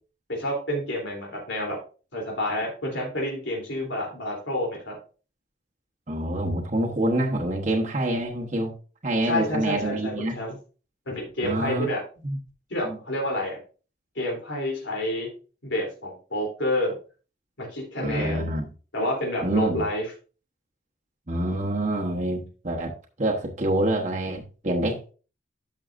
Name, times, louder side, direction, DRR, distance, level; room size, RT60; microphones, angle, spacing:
voice 1, 0.4-1.8 2.1-5.0 9.2-10.5 11.0-12.0 12.7-13.6 14.1-15.3 15.6-17.0 17.6-18.5 18.9-20.1, left 1 dB, 90° left, -1 dB, 3.3 m, -29 dB
voice 2, 6.1-8.7 9.0-10.4 11.4-11.9 12.2-12.4 12.8-13.0 18.0-18.6 19.4-19.8 21.3-25.1, right 1 dB, 40° right, -1 dB, 1.2 m, -26 dB
11.5 x 6.5 x 2.6 m, 0.36 s
head